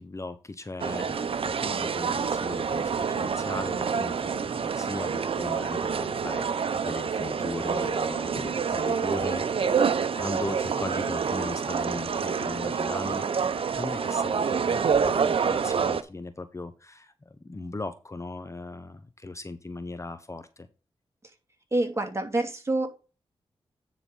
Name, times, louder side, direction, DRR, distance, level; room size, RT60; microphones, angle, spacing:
voice 1, 0.0-13.3 13.7-20.7, left 2 dB, 30° left, 11 dB, 0.9 m, -38 dB
sound 1, 0.8-16.0, right 6 dB, 65° right, 0.8 m, -27 dB
voice 2, 21.7-22.9, right 2 dB, 25° right, 4 dB, 2.6 m, -26 dB
9.7 x 4.0 x 5.5 m, 0.32 s
cardioid pair, 55°, 10 cm